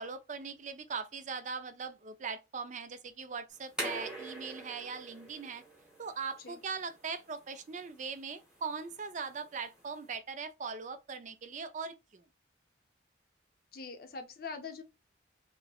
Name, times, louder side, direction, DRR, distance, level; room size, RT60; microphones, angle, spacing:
voice 1, 0.0-5.6 6.0-12.2, right 5 dB, 40° right, 0.4 m, -40 dB
sound 1, 3.5-10.2, right 1 dB, 5° right, 1.0 m, -45 dB
voice 2, 13.7-14.8, left 4 dB, 50° left, 0.6 m, -43 dB
5.4 x 2.1 x 2.3 m
head